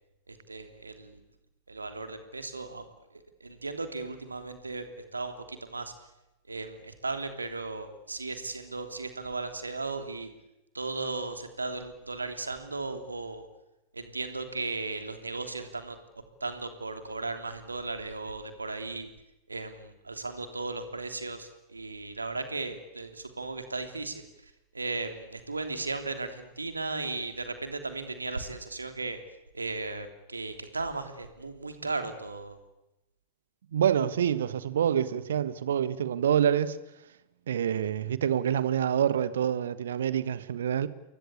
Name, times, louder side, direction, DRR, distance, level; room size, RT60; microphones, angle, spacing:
voice 1, 0.3-1.2 1.7-2.8 3.4-5.9 6.5-10.3 10.7-13.4 13.9-16.0 16.4-19.1 19.5-24.2 24.7-29.2 29.5-32.6, right 3 dB, 80° right, 3.2 m, -36 dB
voice 2, 33.7-36.8 37.5-40.9, right 9 dB, 65° right, 1.4 m, -26 dB
29.0 x 22.5 x 8.5 m
figure-of-eight pair, 90°, 0 cm